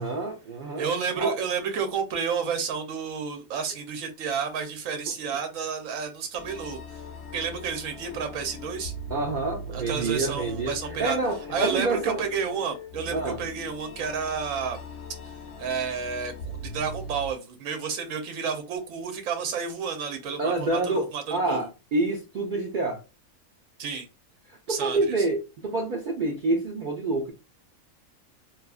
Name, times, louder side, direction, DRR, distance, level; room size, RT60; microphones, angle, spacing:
voice 1, 0.0-0.9 1.2-1.3 9.1-12.2 13.1-13.4 20.4-23.0 24.5-27.3, right 2 dB, 90° right, 0.4 m, -27 dB
voice 2, 0.8-7.0 7.3-8.9 9.7-11.2 11.5-14.8 15.6-21.7 23.8-24.1 24.7-25.3, right 6 dB, 75° right, 1.0 m, -31 dB
sound 1, 6.3-17.3, left 2 dB, 60° left, 0.8 m, -40 dB
2.7 x 2.4 x 2.3 m
omnidirectional pair, 1.4 m